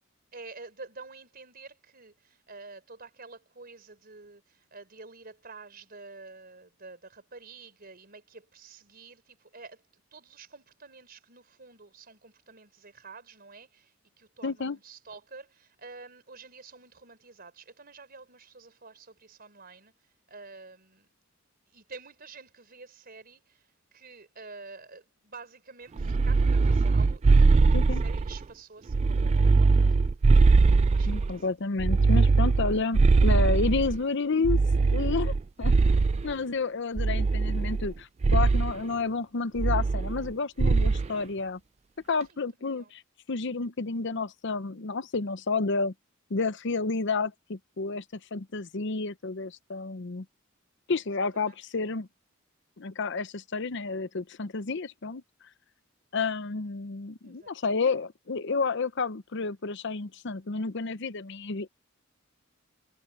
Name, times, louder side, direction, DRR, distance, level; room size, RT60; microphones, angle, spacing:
voice 1, 0.3-21.1 21.7-29.8 30.9-31.5 32.6-32.7 42.3-42.9 51.3-51.6 57.2-57.5, right 4 dB, 50° right, 4.4 m, -49 dB
voice 2, 14.4-14.8 27.7-28.0 31.1-34.6 34.9-35.9 36.2-41.6 42.1-43.0 43.3-45.9 46.3-50.2 50.9-52.1 52.8-55.2 56.1-61.7, left 4 dB, 60° left, 0.8 m, -30 dB
sound 1, 26.0-28.4 28.9-31.3 31.8-34.0 34.4-36.3 37.0-37.9 38.2-38.7 39.6-40.3 40.6-41.1, right 3 dB, 30° right, 0.3 m, -21 dB
head